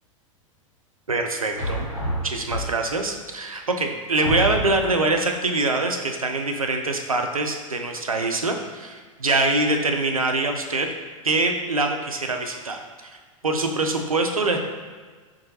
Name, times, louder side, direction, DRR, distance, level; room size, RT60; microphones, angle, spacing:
voice 1, 1.1-1.9 2.2-10.9 11.2-13.1 13.4-14.6, right 2 dB, 85° right, 4 dB, 0.4 m, -24 dB
sound 1, 1.5-3.1 3.7-3.8 4.2-5.1, equal, 85° left, 1.3 m, -28 dB
4.9 x 2.6 x 2.7 m, 1.5 s
figure-of-eight pair, 90°, 17 cm